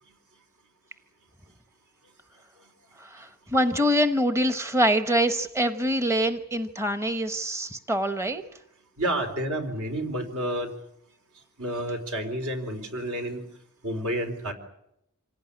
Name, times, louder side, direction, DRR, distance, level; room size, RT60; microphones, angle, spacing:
voice 1, 3.0-8.4, equal, 15° right, 9 dB, 0.9 m, -25 dB
voice 2, 9.0-10.7 11.6-13.4 13.8-14.5, right 1 dB, 75° right, 5 dB, 4.1 m, -30 dB
26.0 x 17.5 x 9.9 m, 0.81 s
head